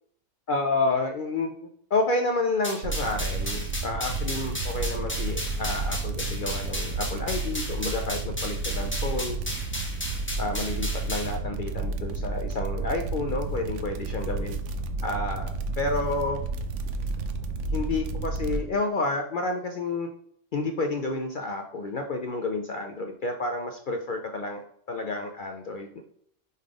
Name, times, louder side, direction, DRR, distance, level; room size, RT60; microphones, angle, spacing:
voice 1, 0.5-9.4 10.4-14.6 15.0-16.4 17.7-20.1 20.5-26.0, left 3 dB, 55° left, 4 dB, 0.6 m, -30 dB
sound 1, 2.6-11.4, left 1 dB, 10° left, 0.9 m, -35 dB
sound 2, 2.8-18.6, right 3 dB, 75° right, 1.0 m, -31 dB
5.4 x 3.9 x 4.9 m, 0.66 s
omnidirectional pair, 1.3 m